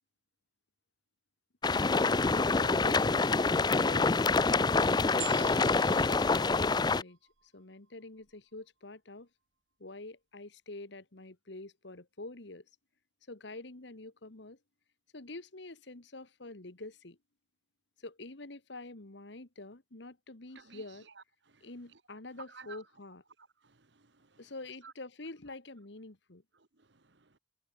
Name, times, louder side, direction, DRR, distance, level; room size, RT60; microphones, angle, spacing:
sound 1, 1.6-7.0, left 3 dB, 20° left, 0.5 m, -26 dB
voice 1, 2.0-3.3 3.7-4.2 4.9-9.3 9.8-12.7 13.3-14.6 15.1-17.2 18.0-21.1 21.6-23.2 24.4-26.4, left 2 dB, 65° left, 1.7 m, -46 dB
sound 2, 5.2-7.6 8.2-8.3, right 13 dB, 90° right, 2.5 m, -46 dB
voice 2, 20.5-22.0 22.5-22.8 23.4-24.5 24.8-24.9 26.5-27.4, right 5 dB, 65° right, 1.6 m, -56 dB
head